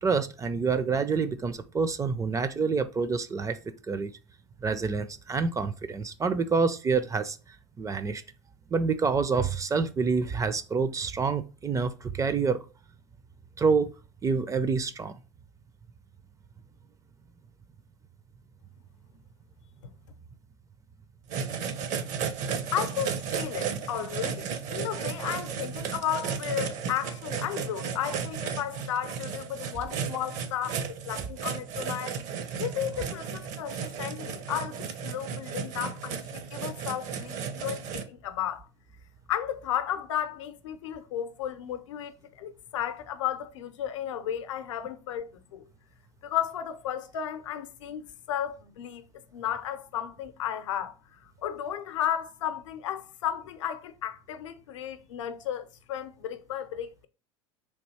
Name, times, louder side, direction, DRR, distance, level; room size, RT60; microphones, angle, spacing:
voice 1, 0.0-3.6 3.9-4.1 4.6-7.4 7.8-8.2 8.7-12.6 13.6-13.9 14.2-15.1, right 5 dB, 20° right, 0.4 m, -27 dB
sound 1, 21.3-38.0, right 7 dB, 55° right, 0.7 m, -34 dB
voice 2, 22.7-32.1 32.6-38.7 39.3-45.6 46.2-49.0 49.3-50.9 51.2-57.1, left 10 dB, 80° left, 0.6 m, -34 dB
3.5 x 2.8 x 4.1 m
hypercardioid pair, 85°, 16 cm